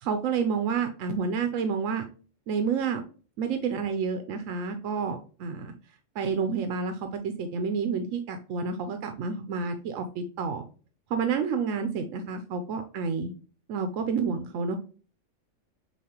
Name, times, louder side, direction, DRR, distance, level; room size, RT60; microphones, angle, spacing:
voice 1, 0.0-2.0 2.5-3.1 3.4-5.7 6.2-10.6 11.1-13.3 13.7-14.8, right 5 dB, 85° right, 7 dB, 1.0 m, -29 dB
7.1 x 2.4 x 2.9 m, 0.38 s
omnidirectional pair, 1.3 m